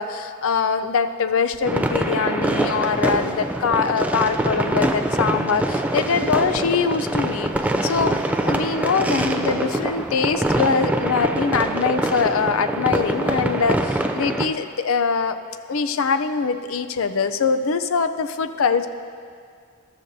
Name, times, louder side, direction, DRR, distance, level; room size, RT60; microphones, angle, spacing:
voice 1, 0.0-7.5 7.8-15.4 15.7-18.9, left 5 dB, 75° left, 10 dB, 0.5 m, -23 dB
sound 1, 1.6-14.5, right 1 dB, 5° right, 0.3 m, -24 dB
14.0 x 12.0 x 2.7 m, 2.1 s
head